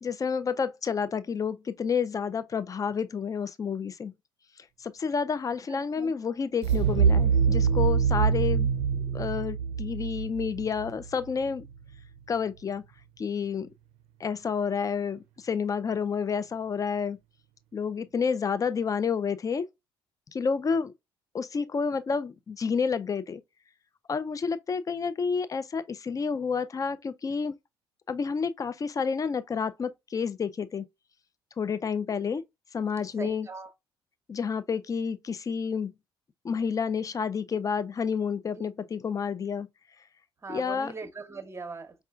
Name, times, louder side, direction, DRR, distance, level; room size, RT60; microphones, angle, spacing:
voice 1, 0.0-4.1 4.8-11.7 12.3-12.8 13.2-13.7 14.2-17.2 17.7-19.7 20.3-20.9 21.3-23.4 24.1-27.5 28.1-30.9 31.6-32.4 32.7-33.5 34.3-35.9 36.4-39.7 40.5-40.9, left 6 dB, 25° left, 0.5 m, -30 dB
voice 2, 5.7-6.1 33.2-33.7 40.4-41.9, right 4 dB, 20° right, 0.9 m, -40 dB
sound 1, 6.6-11.5, right 6 dB, 55° right, 0.5 m, -25 dB
5.4 x 2.4 x 2.3 m
figure-of-eight pair, 50°, 13 cm